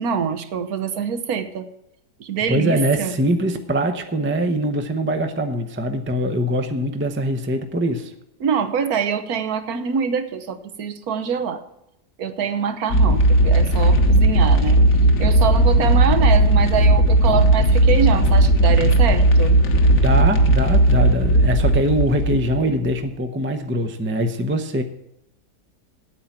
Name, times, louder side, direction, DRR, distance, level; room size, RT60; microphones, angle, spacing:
voice 1, 0.0-1.7 2.2-3.1 8.4-11.6 12.2-14.8 15.2-19.5, right 7 dB, 65° right, 9 dB, 1.4 m, -24 dB
voice 2, 2.5-8.1 19.8-24.8, equal, 10° right, 6 dB, 0.6 m, -23 dB
sound 1, 12.9-23.0, right 1 dB, 55° left, 1.5 m, -16 dB
9.1 x 8.7 x 7.3 m, 0.83 s
omnidirectional pair, 1.8 m